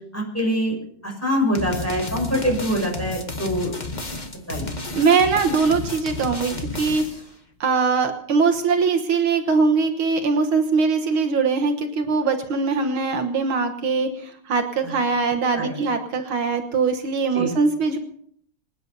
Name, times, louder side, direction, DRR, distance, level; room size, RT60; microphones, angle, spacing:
voice 1, 0.1-0.7 1.0-3.7 4.5-4.7 15.5-15.9 17.3-17.5, equal, 5° left, 0 dB, 5.7 m, -24 dB
sound 1, 1.5-7.3, left 2 dB, 20° left, 1.6 m, -32 dB
voice 2, 5.0-7.0 7.6-18.0, right 4 dB, 75° right, 6 dB, 2.1 m, -21 dB
25.0 x 9.6 x 5.4 m, 0.66 s
omnidirectional pair, 2.3 m